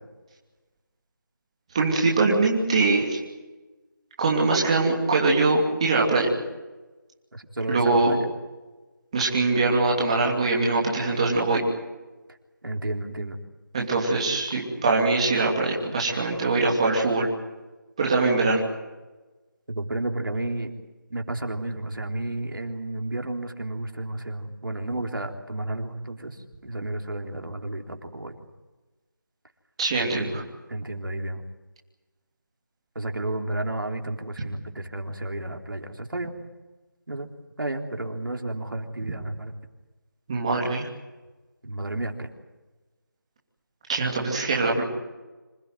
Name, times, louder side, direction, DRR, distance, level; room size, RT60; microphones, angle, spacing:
voice 1, 1.7-3.2 4.2-6.3 7.7-8.2 9.1-11.6 13.7-17.3 18.0-18.6 29.8-30.4 40.3-40.9 43.9-44.8, right 3 dB, 15° right, -2 dB, 2.8 m, -22 dB
voice 2, 7.3-8.2 12.6-13.4 19.7-20.7 21.1-26.4 26.6-28.4 30.1-30.4 30.7-31.4 33.0-36.4 37.1-37.3 37.6-39.5 41.6-42.3, right 1 dB, 75° right, 3 dB, 3.9 m, -32 dB
26.5 x 16.5 x 9.4 m, 1.2 s
figure-of-eight pair, 175°, 11 cm